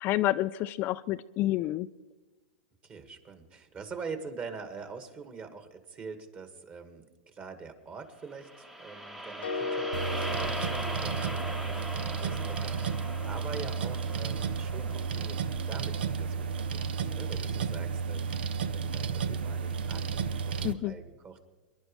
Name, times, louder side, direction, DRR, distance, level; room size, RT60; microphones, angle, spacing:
voice 1, 0.0-1.9 20.6-20.9, left 15 dB, 40° left, 12 dB, 0.4 m, -29 dB
voice 2, 2.8-21.4, right 5 dB, 25° right, 7 dB, 1.9 m, -45 dB
sound 1, 8.3-16.6, equal, 5° right, 1.0 m, -40 dB
sound 2, 9.4-11.7, left 4 dB, 90° left, 1.3 m, -36 dB
sound 3, 9.9-20.7, right 6 dB, 80° right, 0.8 m, -32 dB
25.5 x 11.5 x 3.3 m, 1.3 s
hypercardioid pair, 125°, 5 cm